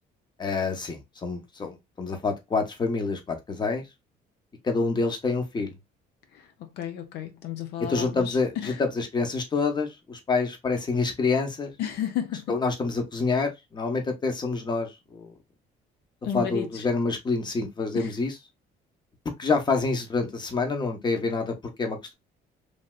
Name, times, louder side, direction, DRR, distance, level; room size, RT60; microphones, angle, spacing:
voice 1, 0.4-3.8 4.6-5.7 7.8-11.7 12.5-15.3 16.3-18.3 19.4-22.1, left 4 dB, 25° left, 0.9 m, -27 dB
voice 2, 6.8-8.4 8.6-8.8 11.8-12.4 16.2-16.8 17.9-18.1, left 9 dB, 75° left, 0.6 m, -32 dB
3.2 x 2.8 x 2.3 m
cardioid pair, 110°, 17 cm